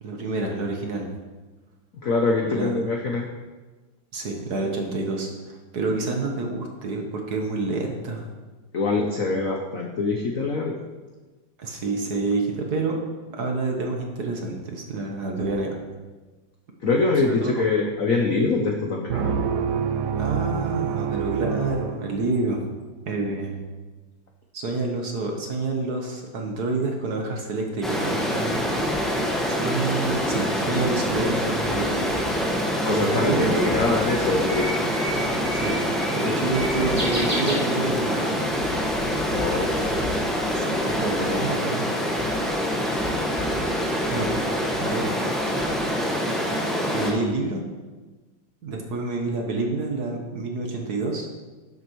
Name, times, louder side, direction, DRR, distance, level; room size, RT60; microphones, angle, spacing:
voice 1, 0.0-1.1 2.4-2.7 4.1-8.3 11.6-13.0 13.3-15.8 17.2-17.5 20.2-22.6 23.1-23.6 24.5-28.7 29.0-32.2 32.9-33.7 35.5-35.8 36.1-38.3 40.6-41.9 44.1-44.3 44.8-45.1 46.9-47.6 48.6-51.3, right 3 dB, 55° right, 1 dB, 1.4 m, -28 dB
voice 2, 2.0-3.3 8.7-10.8 16.8-19.4 32.8-34.7 39.3-39.7, left 3 dB, 65° left, 1 dB, 0.8 m, -24 dB
sound 1, 19.1-22.7, right 7 dB, 75° right, 1.0 m, -27 dB
Stream, 27.8-47.1, equal, ahead, 1.0 m, -25 dB
Bird, 32.9-38.2, right 1 dB, 30° right, 2.4 m, -34 dB
12.0 x 7.8 x 3.1 m, 1.3 s
omnidirectional pair, 2.4 m